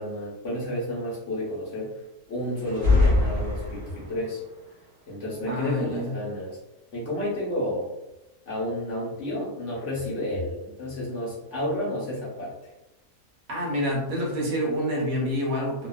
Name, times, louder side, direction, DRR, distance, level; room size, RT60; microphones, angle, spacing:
voice 1, 0.0-2.0 2.3-4.4 5.1-6.6 6.9-7.9 8.5-12.5, left 1 dB, 55° left, -5 dB, 1.0 m, -31 dB
sound 1, 2.6-4.2, left 2 dB, 40° right, 0.8 m, -23 dB
voice 2, 5.5-6.2 13.5-15.9, equal, 65° right, -2 dB, 1.1 m, -27 dB
2.7 x 2.3 x 2.2 m, 0.99 s
omnidirectional pair, 1.6 m